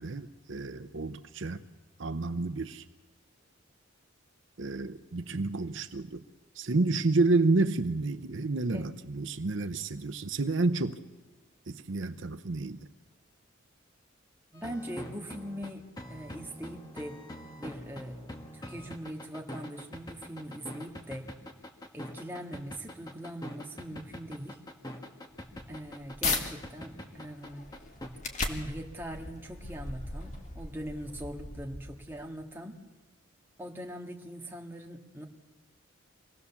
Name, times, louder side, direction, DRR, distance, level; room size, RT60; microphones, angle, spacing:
voice 1, 0.0-1.6 2.0-2.8 4.6-6.2 6.5-11.0 11.7-12.8, right 3 dB, 65° right, 10 dB, 0.7 m, -30 dB
sound 1, 14.5-28.1, left 1 dB, 20° left, 1.7 m, -43 dB
voice 2, 14.5-15.8 16.1-17.2 17.6-18.2 18.5-21.3 21.9-24.6 25.7-27.7 28.4-32.8 33.6-35.3, equal, 10° right, 1 dB, 1.8 m, -41 dB
sound 2, 25.3-26.4 27.0-32.2, left 3 dB, 35° left, 1.9 m, -37 dB
25.5 x 17.5 x 7.1 m, 1.2 s
head